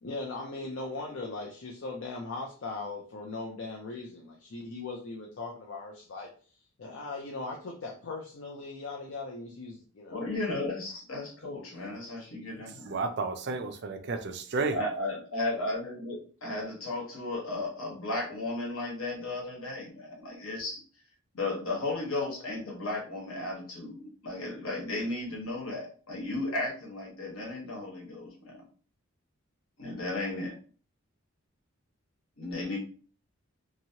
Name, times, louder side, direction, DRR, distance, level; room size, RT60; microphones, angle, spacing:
voice 1, 0.0-6.3 6.8-10.3 11.7-11.9 12.2-12.3 13.4-13.7, left 3 dB, 60° left, 0.5 m, -39 dB
voice 2, 10.1-13.0 14.7-20.8 21.3-28.6 29.8-30.5 32.4-32.8, left 2 dB, 80° left, 1.3 m, -34 dB
voice 3, 12.9-14.8, right 3 dB, 50° right, 0.4 m, -32 dB
2.9 x 2.7 x 2.8 m
head